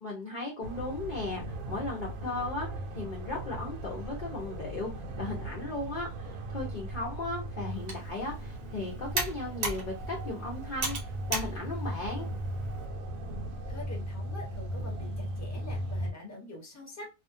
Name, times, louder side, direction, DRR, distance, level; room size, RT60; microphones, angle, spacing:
voice 1, 0.0-2.7 2.9-12.3, left 2 dB, 50° left, -3 dB, 0.6 m, -36 dB
sound 1, 0.6-16.1, right 1 dB, 70° right, 1.0 m, -38 dB
Computer keyboard, 7.7-12.9, right 2 dB, 45° right, 0.8 m, -37 dB
voice 2, 13.3-17.1, left 2 dB, 15° left, 0 dB, 0.8 m, -45 dB
2.7 x 2.3 x 2.6 m, 0.26 s
omnidirectional pair, 1.7 m